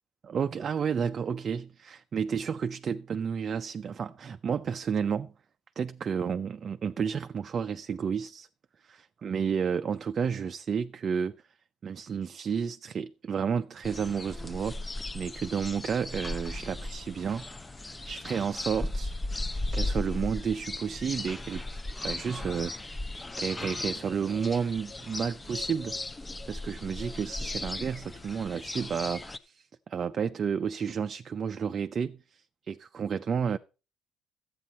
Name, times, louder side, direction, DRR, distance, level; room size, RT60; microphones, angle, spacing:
voice 1, 0.2-5.3 5.8-8.5 8.8-11.4 11.8-17.5 17.8-19.1 19.7-23.0 23.4-26.0 26.5-33.6, right 7 dB, 40° right, 0.5 m, -31 dB
sound 1, 13.8-29.4, left 2 dB, 15° left, 0.6 m, -36 dB
12.5 x 8.5 x 4.2 m
cardioid pair, 120°, 0 cm